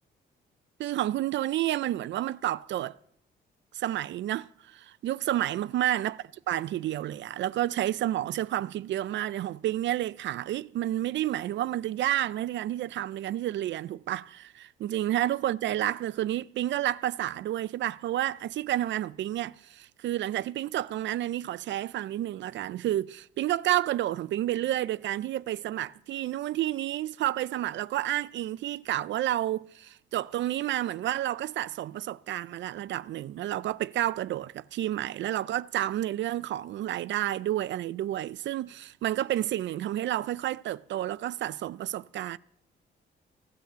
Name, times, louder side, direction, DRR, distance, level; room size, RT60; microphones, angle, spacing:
voice 1, 0.8-3.0 3.7-6.2 6.5-42.4, right 13 dB, 65° right, 0.4 m, -30 dB
16.5 x 9.1 x 6.8 m
cardioid pair, 90°, 20 cm